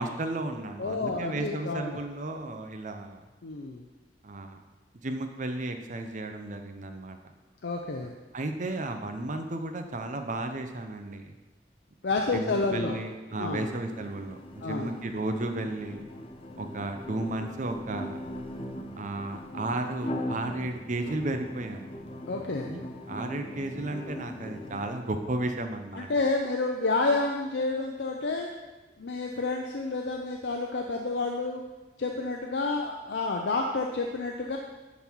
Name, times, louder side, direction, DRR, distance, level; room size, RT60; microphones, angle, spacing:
voice 1, 0.0-3.2 4.2-4.6 5.0-7.2 8.3-11.4 12.3-16.0 16.6-18.2 19.0-21.8 22.7-26.1, right 2 dB, 45° right, 6 dB, 0.7 m, -34 dB
voice 2, 0.8-2.0 3.4-3.9 7.6-8.1 12.0-13.0 13.4-13.7 14.6-14.9 22.3-22.7 26.0-28.5 29.0-31.6 32.0-34.6, left 3 dB, 75° left, 1 dB, 0.6 m, -29 dB
sound 1, 13.3-24.9, left 1 dB, 35° left, 0.7 m, -40 dB
10.5 x 4.1 x 4.5 m, 1.2 s
head